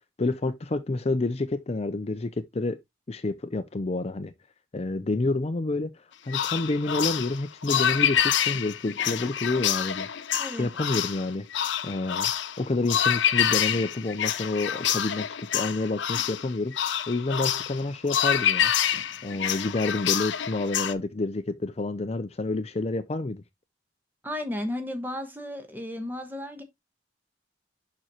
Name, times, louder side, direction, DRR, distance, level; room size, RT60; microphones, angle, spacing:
voice 1, 0.2-2.8 3.1-4.3 4.7-10.1 10.5-11.5 11.8-12.3 12.6-16.7 17.1-18.7 19.2-23.4, left 2 dB, 35° left, 0.5 m, -29 dB
sound 1, 6.3-20.9, left 9 dB, 80° left, 0.6 m, -27 dB
voice 2, 10.4-10.7 24.2-26.6, left 1 dB, 10° right, 1.1 m, -34 dB
6.6 x 6.2 x 2.9 m
head